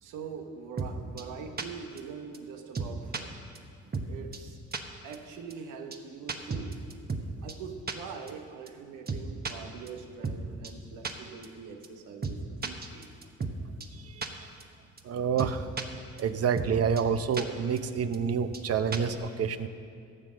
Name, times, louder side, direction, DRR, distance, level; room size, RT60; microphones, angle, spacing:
voice 1, 0.0-3.4 4.1-4.6 5.0-6.8 7.4-13.1, right 6 dB, 90° right, 5 dB, 1.2 m, -43 dB
sound 1, 0.8-0.9 1.2-1.3 1.6-1.7 2.0-2.1 2.3-2.4 2.7-3.2 3.5-3.6 3.9-4.1 4.3-4.4 4.7-4.8 5.1-5.2 5.5-5.6 5.9-6.0 6.3-7.2 7.5-7.6 7.9-8.0 8.3-8.4 8.7-8.8 9.1-9.5 9.9-10.0 10.2-10.4 10.6-10.7 11.0-11.1 11.4-11.5 11.8-11.9 12.2-12.4 12.6-13.5 13.8-13.9 14.2-14.3 14.6-14.7 15.0-15.1 15.4-15.8 16.2-16.3 16.6-16.7 17.0-17.1 17.3-17.4 17.8-17.9 18.1-18.2 18.5-18.6 18.9-19.1, right 4 dB, 30° right, 1.2 m, -33 dB
voice 2, 15.0-15.6 16.2-19.7, right 6 dB, 55° right, 11 dB, 0.8 m, -28 dB
14.5 x 7.7 x 6.4 m, 2.4 s
cardioid pair, 90°, 30 cm